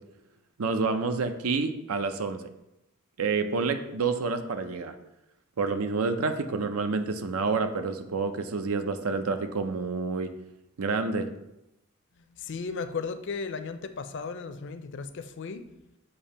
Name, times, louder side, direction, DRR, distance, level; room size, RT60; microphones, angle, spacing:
voice 1, 0.6-2.5 3.2-5.0 5.6-10.3 10.8-11.4, right 4 dB, 85° right, 8 dB, 0.6 m, -28 dB
voice 2, 12.3-15.7, left 5 dB, 60° left, 10 dB, 0.5 m, -35 dB
6.9 x 2.8 x 5.5 m, 0.89 s
head